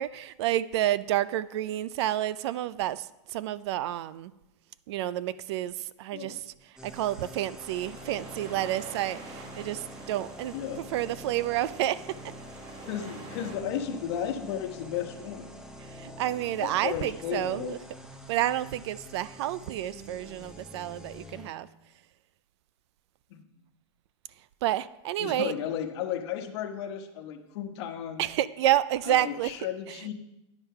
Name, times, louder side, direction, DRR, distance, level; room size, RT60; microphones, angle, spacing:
voice 1, 0.0-4.3 4.9-12.3 15.8-17.8 18.3-21.7 24.6-25.5 28.2-29.6 29.9-30.1, right 13 dB, 60° right, 18 dB, 0.4 m, -30 dB
sound 1, 6.8-21.5, equal, 5° right, 0.6 m, -46 dB
sound 2, 7.6-13.6, right 3 dB, 35° right, 1.5 m, -48 dB
voice 2, 10.5-10.8 12.9-15.5 16.6-17.8 23.3-23.4 25.2-28.2 29.0-30.1, left 9 dB, 55° left, 6 dB, 1.1 m, -34 dB
9.9 x 5.6 x 5.6 m, 0.92 s
supercardioid pair, 160°, 16 cm